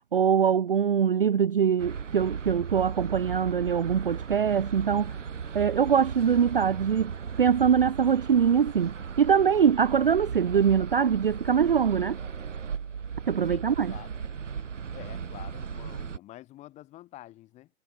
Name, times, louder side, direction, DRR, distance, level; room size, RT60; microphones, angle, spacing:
voice 1, 0.1-5.1 5.5-7.1 7.4-12.2 13.3-13.9, right 7 dB, 40° right, 0.5 m, -23 dB
sound 1, 1.8-16.2, right 6 dB, 55° right, 5.8 m, -36 dB
voice 2, 13.5-14.1 14.9-17.7, left 15 dB, 15° left, 5.0 m, -47 dB
figure-of-eight pair, 140°, 43 cm